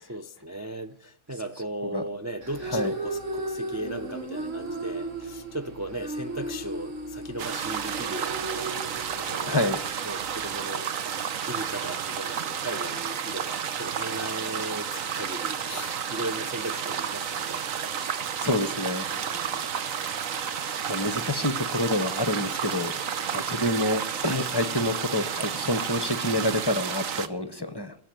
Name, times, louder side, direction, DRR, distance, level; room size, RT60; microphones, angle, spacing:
voice 1, 0.0-8.7 9.1-9.7 10.0-17.6 19.1-19.7 27.2-27.7, right 1 dB, 20° right, 0.5 m, -37 dB
sound 1, 2.4-10.6, right 2 dB, 70° right, 2.4 m, -36 dB
sound 2, 7.4-27.3, right 7 dB, 90° right, 1.4 m, -31 dB
voice 2, 9.5-9.8 18.4-19.0 20.9-22.9 23.3-27.9, left 1 dB, 20° left, 0.8 m, -27 dB
18.0 x 7.5 x 9.1 m
omnidirectional pair, 1.3 m